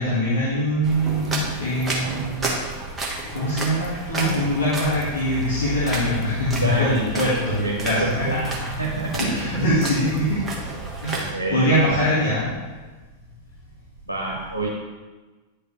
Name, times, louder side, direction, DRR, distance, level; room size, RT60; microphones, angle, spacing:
voice 1, 0.0-2.5 3.1-6.9 7.2-8.5 9.2-10.4 11.0-12.6, equal, 70° left, -9 dB, 1.8 m, -23 dB
sound 1, 0.8-11.3, right 2 dB, 15° right, 1.4 m, -31 dB
voice 2, 6.6-7.3 7.6-8.3 8.8-9.2 11.1-11.7 14.1-14.7, right 2 dB, 80° right, -4 dB, 1.1 m, -27 dB
9.7 x 5.0 x 3.2 m, 1.3 s
figure-of-eight pair, 90°, 0 cm